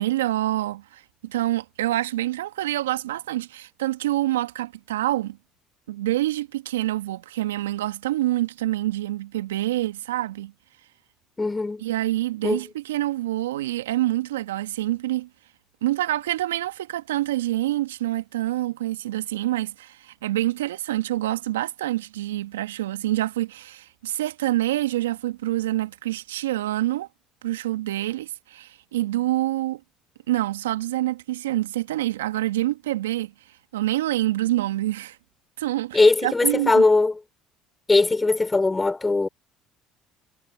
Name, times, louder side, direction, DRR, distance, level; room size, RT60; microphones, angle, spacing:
voice 1, 0.0-5.4 5.9-10.5 11.8-15.3 15.8-27.1 27.4-29.8 30.3-33.3 33.7-35.2 35.6-36.8, right 15 dB, 85° right, 1.8 m, -26 dB
voice 2, 11.4-11.8 12.4-12.6 35.9-37.2 37.9-39.3, left 3 dB, 20° left, 4.5 m, -20 dB
hypercardioid pair, 60°, 0 cm